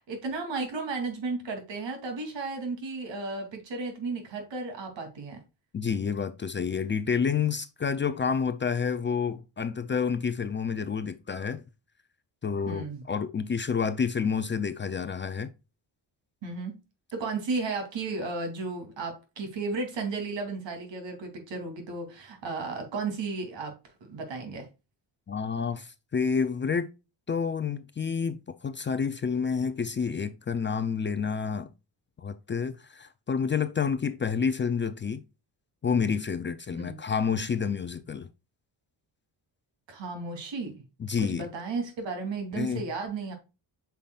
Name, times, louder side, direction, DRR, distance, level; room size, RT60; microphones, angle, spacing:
voice 1, 0.1-5.4 12.7-13.0 16.4-16.7 17.1-23.7 24.1-24.7 36.7-37.0 39.9-40.8 41.2-43.3, right 3 dB, 75° right, 3.0 m, -34 dB
voice 2, 5.7-11.6 12.4-15.5 25.3-26.9 27.3-31.7 32.2-35.2 35.8-38.3 41.0-41.5 42.5-42.8, left 6 dB, 25° left, 0.4 m, -29 dB
8.6 x 5.8 x 2.4 m
cardioid pair, 150°, 44 cm